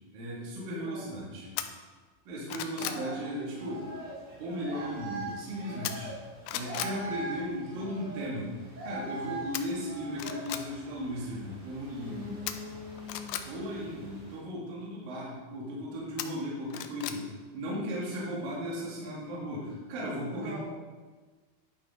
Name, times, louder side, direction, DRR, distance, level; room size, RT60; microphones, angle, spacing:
voice 1, 0.1-1.5 2.3-3.9 4.4-6.1 6.5-8.5 8.8-12.4 13.5-17.3 17.5-20.6, equal, 55° right, -6 dB, 3.7 m, -36 dB
voice 2, 0.8-1.1 2.8-3.2 12.0-13.5 20.4-20.6, left 2 dB, 80° right, -5 dB, 4.9 m, -42 dB
sound 1, 1.6-1.7 2.2-3.0 5.8-6.2 6.5-7.0 9.5-9.6 10.1-10.6 12.5-13.4 16.2-17.2 17.6-17.7, left 11 dB, 80° left, 2.6 m, -35 dB
sound 2, 3.2-14.4, right 2 dB, 40° right, 3.8 m, -43 dB
11.0 x 9.6 x 3.9 m, 1.4 s
omnidirectional pair, 5.0 m